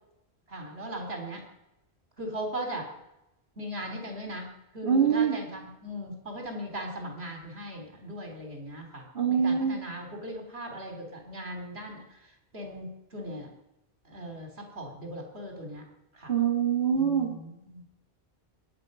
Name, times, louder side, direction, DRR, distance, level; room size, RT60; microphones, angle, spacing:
voice 1, 0.5-1.4 2.2-2.9 3.6-13.5 14.1-15.8 16.1-16.3 16.9-17.9, right 1 dB, 70° right, 2 dB, 3.5 m, -39 dB
voice 2, 4.8-5.4 9.1-9.8 16.3-17.3, right 7 dB, 55° right, -2 dB, 3.3 m, -24 dB
24.5 x 11.0 x 5.4 m, 0.91 s
omnidirectional pair, 1.1 m